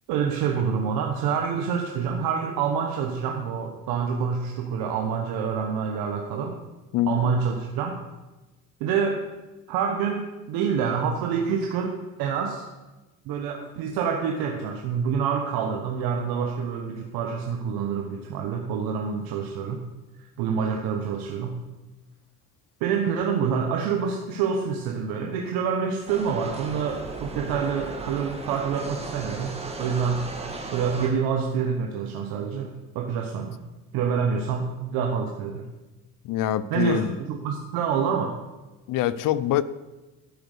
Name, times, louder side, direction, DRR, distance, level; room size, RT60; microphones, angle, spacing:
voice 1, 0.1-6.6 7.1-8.0 8.8-9.2 9.7-12.6 13.3-19.8 20.4-21.6 22.8-29.5 29.8-30.2 30.7-33.6 33.9-35.7 36.7-38.4, right 6 dB, 80° right, 2 dB, 1.2 m, -27 dB
voice 2, 6.9-7.4 36.2-37.2 38.9-39.6, left 12 dB, 60° left, 16 dB, 0.6 m, -24 dB
sound 1, 26.1-31.1, right 2 dB, 15° right, 1.9 m, -36 dB
13.0 x 5.2 x 6.6 m, 1.1 s
cardioid pair, 105°, 36 cm